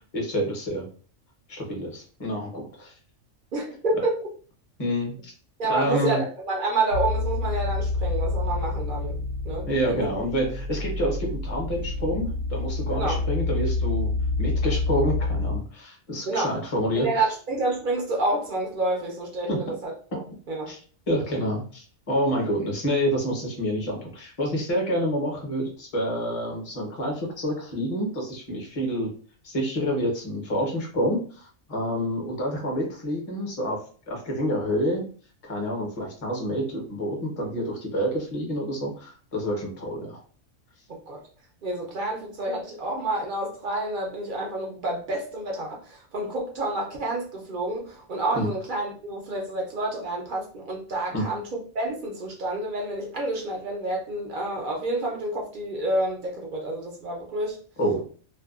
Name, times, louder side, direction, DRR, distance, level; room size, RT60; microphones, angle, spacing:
voice 1, 0.1-0.9 1.5-2.9 4.8-5.3 5.7-6.2 9.6-14.1 14.4-17.3 19.5-19.6 20.7-20.8 21.1-29.1 29.4-33.8 34.1-35.1 35.5-40.2 48.3-48.5 51.1-51.2 57.8-58.0, equal, 35° left, 0 dB, 0.7 m, -28 dB
voice 2, 3.5-4.1 5.6-10.1 12.9-13.2 16.3-16.5 16.9-20.2 20.5-20.7 40.9-41.2 41.6-57.6, right 2 dB, 50° right, -1 dB, 0.6 m, -29 dB
sound 1, 6.9-15.6, left 3 dB, 80° right, 1.1 m, -28 dB
2.6 x 2.2 x 2.3 m, 0.42 s
omnidirectional pair, 1.4 m